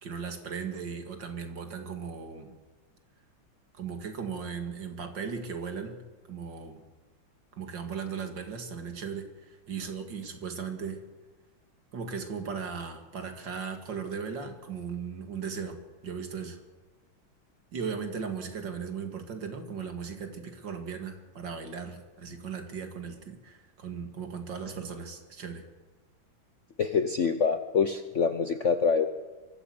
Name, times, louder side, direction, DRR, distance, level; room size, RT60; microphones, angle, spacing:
voice 1, 0.0-2.5 3.7-6.0 6.3-6.8 7.5-11.0 11.9-16.6 17.7-25.6, right 6 dB, 65° right, 6 dB, 2.7 m, -37 dB
voice 2, 26.8-29.1, left 6 dB, 55° left, 8 dB, 0.9 m, -25 dB
23.5 x 14.5 x 7.9 m, 1.2 s
omnidirectional pair, 2.2 m